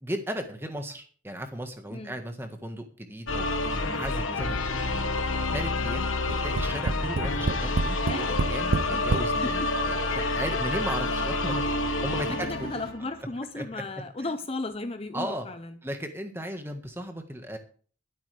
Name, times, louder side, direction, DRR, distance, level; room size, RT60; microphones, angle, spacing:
voice 1, 0.0-4.8 5.5-6.1 6.4-11.6 12.0-12.7 13.5-13.8 14.2-14.3 15.1-15.5 15.8-17.6, equal, 10° right, 6 dB, 1.5 m, -36 dB
sound 1, 3.3-13.2, left 2 dB, 85° left, 1.5 m, -28 dB
Tap, 6.3-9.3 10.1-10.2 10.5-10.6, right 3 dB, 75° right, 0.6 m, -28 dB
sound 2, 7.7-12.9, left 2 dB, 50° left, 2.2 m, -46 dB
voice 2, 8.7-9.1 9.4-9.7 12.3-15.8, left 2 dB, 30° left, 9 dB, 0.7 m, -35 dB
23.0 x 8.3 x 3.4 m, 0.44 s
head